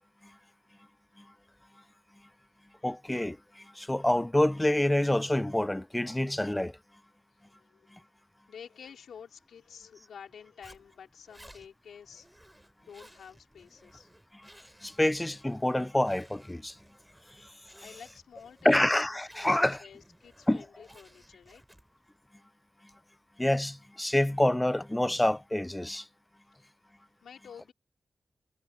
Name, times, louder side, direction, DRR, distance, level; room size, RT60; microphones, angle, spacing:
voice 1, 2.8-6.8 7.9-8.0 14.8-16.8 18.6-19.8 20.5-20.6 23.4-26.1, left 1 dB, 15° left, 0.5 m, -27 dB
voice 2, 7.5-7.9 8.5-12.3 12.8-14.1 17.8-18.9 19.4-21.6 27.2-27.7, left 7 dB, 90° left, 4.6 m, -50 dB
Zipper (clothing), 10.6-22.1, right 1 dB, 10° right, 6.2 m, -58 dB
cardioid pair, 55°, 0 cm